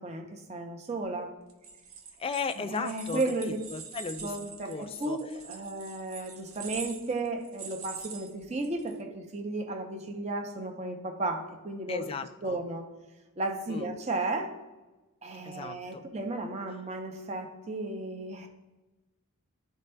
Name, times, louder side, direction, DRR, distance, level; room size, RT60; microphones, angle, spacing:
voice 1, 0.0-1.3 2.6-3.6 4.2-12.1 12.4-12.9 13.4-14.5 15.2-18.5, right 2 dB, 30° right, 4 dB, 0.6 m, -34 dB
sound 1, 1.5-8.9, right 6 dB, 70° right, 0.7 m, -44 dB
voice 2, 2.2-4.3 4.6-5.2 11.9-12.6 13.7-13.9 15.4-16.0, left 5 dB, 25° left, 9 dB, 0.3 m, -36 dB
12.0 x 4.2 x 2.2 m, 1.1 s
head